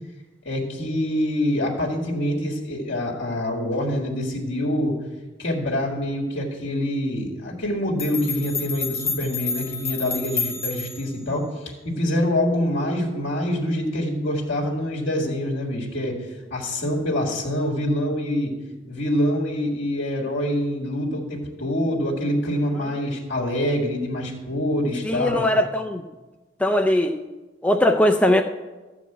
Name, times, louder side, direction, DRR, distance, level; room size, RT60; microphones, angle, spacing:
voice 1, 0.5-5.0 5.4-18.5 18.9-25.5, left 1 dB, 75° left, -1 dB, 1.8 m, -25 dB
sound 1, 7.6-7.7 8.0-11.1, left 4 dB, 35° left, 1.3 m, -29 dB
voice 2, 25.0-26.0 26.6-27.1 27.6-28.4, left 1 dB, 10° left, 4 dB, 0.5 m, -19 dB
13.0 x 4.8 x 7.9 m, 1.2 s
head